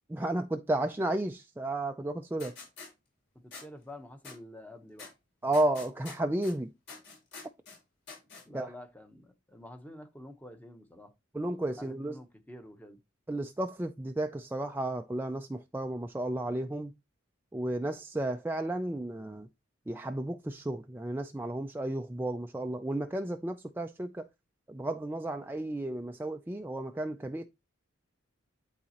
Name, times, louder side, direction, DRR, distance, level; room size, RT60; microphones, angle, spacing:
voice 1, 0.1-2.5 5.4-6.7 8.5-8.7 11.3-12.2 13.3-16.9 17.5-19.5 19.9-24.3 24.7-27.5, right 1 dB, 10° right, 0.4 m, -33 dB
sound 1, 2.4-2.9 3.5-3.6 4.2-4.4 5.0-5.1 5.5-6.5 6.9-7.8 8.1-8.4, left 4 dB, 55° left, 5.3 m, -46 dB
voice 2, 3.3-5.1 8.4-11.1 11.8-13.0, left 1 dB, 10° left, 0.9 m, -48 dB
11.0 x 4.1 x 2.9 m
head